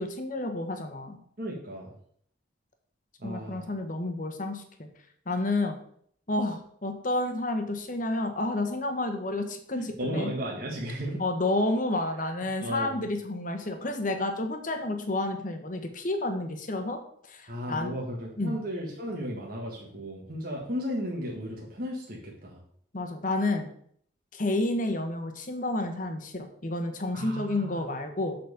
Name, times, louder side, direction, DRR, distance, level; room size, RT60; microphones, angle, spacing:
voice 1, 0.0-1.2 3.2-4.9 5.3-5.7 6.3-10.3 11.2-17.0 17.3-17.9 18.4-18.6 22.9-23.7 24.3-28.4, left 2 dB, 45° left, 6 dB, 1.1 m, -30 dB
voice 2, 1.4-1.9 3.2-3.7 9.8-11.2 12.2-12.3 12.6-13.0 17.5-22.6 27.1-27.9, equal, 50° right, -2 dB, 1.6 m, -35 dB
8.0 x 4.2 x 6.8 m, 0.63 s
head